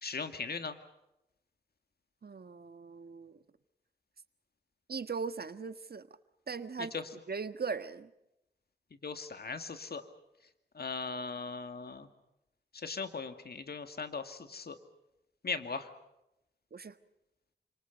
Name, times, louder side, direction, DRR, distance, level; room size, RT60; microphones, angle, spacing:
voice 1, 0.0-0.8 6.9-7.0 9.0-10.0 10.8-12.1 12.7-14.8 15.4-15.9, left 4 dB, 65° left, 8 dB, 2.2 m, -38 dB
voice 2, 2.2-3.4 4.9-6.1 6.5-6.9 7.3-8.1 16.7-16.9, right 5 dB, 65° right, 11 dB, 1.5 m, -39 dB
29.5 x 27.0 x 5.3 m, 0.88 s
wide cardioid pair, 75°, 18 cm